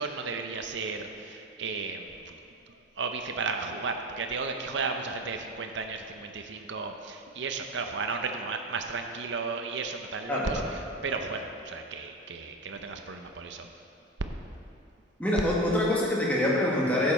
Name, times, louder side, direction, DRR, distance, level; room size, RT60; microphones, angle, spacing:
voice 1, 0.0-2.3 3.0-13.7, right 4 dB, 65° right, 5 dB, 0.7 m, -34 dB
voice 2, 10.3-10.6 15.2-17.1, left 1 dB, 5° left, -6 dB, 1.6 m, -25 dB
11.0 x 7.4 x 4.3 m, 2.6 s
head